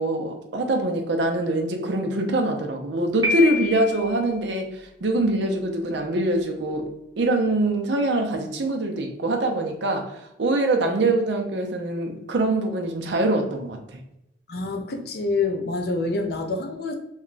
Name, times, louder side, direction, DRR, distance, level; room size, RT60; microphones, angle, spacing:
voice 1, 0.0-14.0, right 2 dB, 60° right, 3 dB, 0.5 m, -24 dB
Piano, 3.2-4.2, left 2 dB, 20° right, 0.6 m, -27 dB
voice 2, 14.5-16.9, left 3 dB, 55° left, 4 dB, 0.5 m, -27 dB
2.3 x 2.1 x 3.8 m, 0.84 s
head